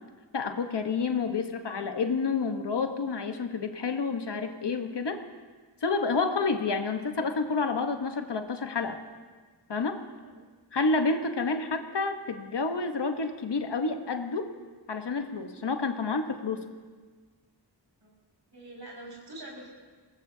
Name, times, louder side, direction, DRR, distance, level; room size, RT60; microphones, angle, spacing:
voice 1, 0.3-5.2 5.8-9.0 9.7-10.0 10.7-14.5 14.9-16.6, left 4 dB, 75° left, 6 dB, 1.2 m, -29 dB
voice 2, 18.5-19.7, right 1 dB, 70° right, -3 dB, 5.8 m, -45 dB
23.0 x 19.5 x 2.8 m, 1.4 s
wide cardioid pair, 80°, 42 cm